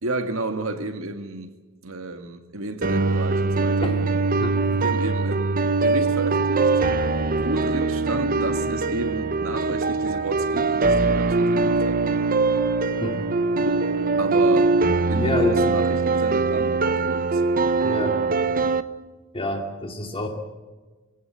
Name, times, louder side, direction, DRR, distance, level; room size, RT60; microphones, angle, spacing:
voice 1, 0.0-4.0 4.7-6.7 7.4-12.0 13.7-13.9 14.2-14.8 15.1-17.4, right 2 dB, 70° right, 2.1 m, -32 dB
sound 1, 2.8-18.8, right 3 dB, 45° right, 0.9 m, -22 dB
voice 2, 15.2-15.6 17.8-18.2 19.3-20.3, left 1 dB, 25° left, 2.4 m, -27 dB
25.0 x 17.5 x 7.7 m
head